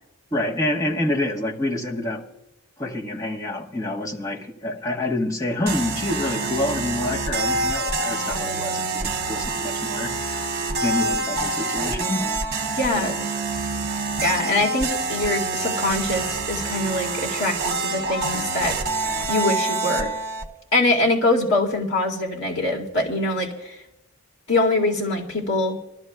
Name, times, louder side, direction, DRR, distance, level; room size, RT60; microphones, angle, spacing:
voice 1, 0.3-2.3 2.8-12.3, left 1 dB, 15° left, 1.2 m, -27 dB
sound 1, 5.7-20.5, right 3 dB, 45° right, 0.8 m, -26 dB
voice 2, 12.8-13.2 14.2-18.8 19.3-20.1 20.7-23.8 24.5-25.8, left 2 dB, 55° left, 2.0 m, -23 dB
25.0 x 12.5 x 2.3 m
head